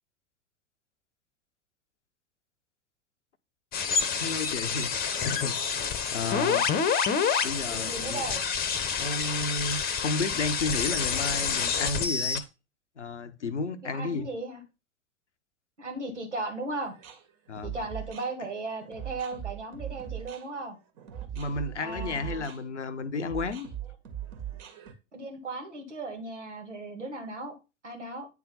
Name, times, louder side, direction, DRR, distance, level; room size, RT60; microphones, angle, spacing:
sound 1, 3.7-12.4, left 6 dB, 25° left, 1.0 m, -28 dB
voice 1, 4.2-4.9 5.2-6.7 7.4-8.2 9.0-12.4 13.0-14.3 17.5-17.7 21.3-23.7, left 3 dB, 80° left, 0.8 m, -32 dB
voice 2, 6.2-6.6 7.7-8.4 13.8-14.6 15.8-16.9 17.6-20.8 21.8-22.5 25.1-27.5 27.8-28.3, right 2 dB, 80° right, 2.2 m, -36 dB
sound 2, 16.8-24.9, right 11 dB, 40° right, 1.8 m, -40 dB
9.2 x 3.6 x 5.5 m
figure-of-eight pair, 85°, 35 cm